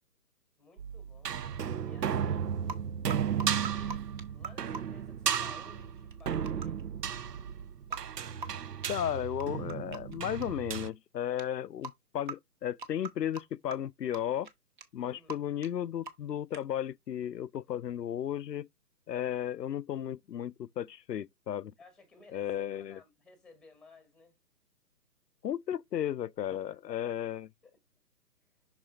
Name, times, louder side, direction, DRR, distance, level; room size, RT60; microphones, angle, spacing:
voice 1, 0.6-1.3 1.8-2.6 3.7-6.8 11.2-11.5 15.0-15.5 21.8-24.3 26.5-26.6 26.9-27.1 27.6-27.8, left 3 dB, ahead, 1.3 m, -58 dB
sound 1, 0.8-10.9, right 8 dB, 75° right, 0.7 m, -34 dB
sound 2, 2.7-2.8 3.1-4.8 5.3-5.4 6.1-6.8 7.2-7.3 7.9-8.0 8.4-8.5 8.8-8.9 9.4-10.2 10.4-10.9 11.4-11.5 11.8-11.9 12.3-12.4 12.8-13.4 13.7-13.8 14.1-14.2 14.4-14.5 14.8-14.9 15.1-15.4 15.6-15.7 16.0-16.3 16.5-16.6, right 4 dB, 30° right, 0.9 m, -40 dB
voice 2, 8.9-14.5 14.9-18.7 19.1-21.7 22.3-23.0 25.4-27.5, left 10 dB, 85° left, 0.6 m, -34 dB
6.0 x 4.1 x 4.2 m
figure-of-eight pair, 140°, 48 cm